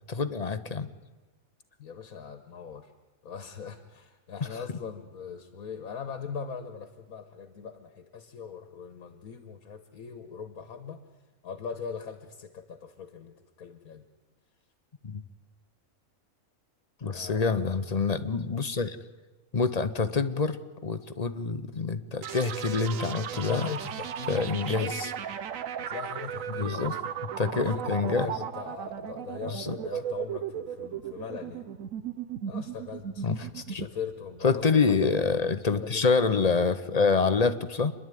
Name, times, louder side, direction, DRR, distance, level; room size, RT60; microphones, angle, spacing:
voice 1, 0.1-0.9 15.0-15.2 17.0-19.0 19.5-23.6 24.3-25.1 26.5-26.9 27.4-28.3 29.5-29.7 33.2-33.9 34.4-37.9, left 4 dB, 35° left, 10 dB, 0.7 m, -27 dB
voice 2, 1.8-2.9 3.2-11.0 11.4-14.0 17.0-17.7 23.3-25.1 25.8-27.0 27.6-31.7 32.5-33.3 33.7-35.1 35.8-36.4, left 6 dB, 80° left, 9 dB, 1.6 m, -40 dB
sound 1, 22.2-35.8, right 9 dB, 70° right, 1.2 m, -36 dB
27.5 x 11.0 x 9.2 m, 1.2 s
omnidirectional pair, 1.5 m